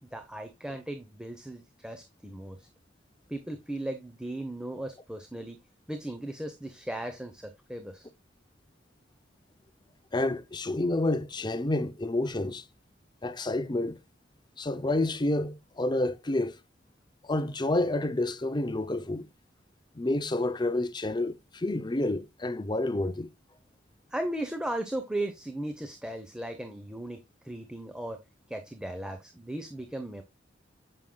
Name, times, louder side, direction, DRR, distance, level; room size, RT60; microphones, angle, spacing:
voice 1, 0.0-2.7 3.3-5.6 5.9-8.1 24.1-28.2 28.5-30.2, right 1 dB, 5° right, 0.9 m, -37 dB
voice 2, 10.1-12.6 13.2-14.0 14.6-16.6 17.2-19.3 20.0-23.3, left 2 dB, 25° left, 0.6 m, -29 dB
9.0 x 7.7 x 2.3 m
head